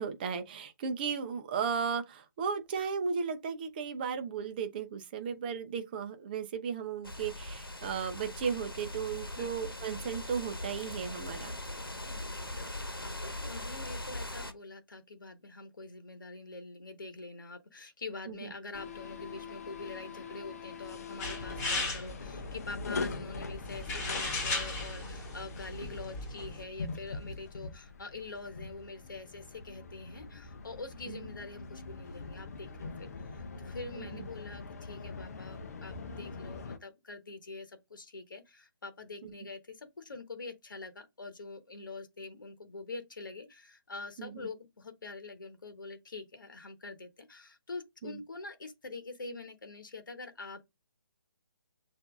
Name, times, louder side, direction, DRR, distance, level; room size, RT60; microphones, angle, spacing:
voice 1, 0.0-11.5 18.3-18.5 31.1-31.3 34.0-34.2 39.2-39.3 44.2-44.5 48.0-48.2, right 6 dB, 25° right, 0.7 m, -35 dB
sound 1, 7.0-14.5, left 1 dB, 90° left, 1.0 m, -40 dB
voice 2, 12.1-50.7, left 3 dB, 60° left, 1.1 m, -45 dB
sound 2, 18.7-36.8, left 4 dB, 45° left, 0.7 m, -43 dB
sound 3, 21.2-26.6, left 2 dB, 20° left, 1.9 m, -37 dB
6.8 x 2.7 x 2.5 m
figure-of-eight pair, 140°, 12 cm